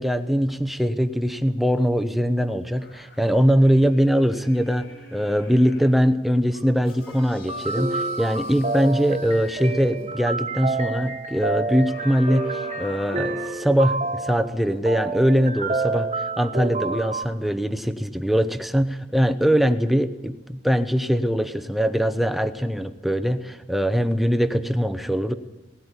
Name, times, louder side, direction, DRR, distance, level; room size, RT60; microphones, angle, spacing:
voice 1, 0.0-25.3, equal, ahead, 9 dB, 0.9 m, -22 dB
sound 1, 2.8-6.0 6.5-10.1 11.9-14.2 14.7-14.8, left 1 dB, 55° left, 7.1 m, -44 dB
sound 2, 7.5-17.2, right 3 dB, 35° right, 1.5 m, -28 dB
18.0 x 16.5 x 9.9 m, 1.1 s
head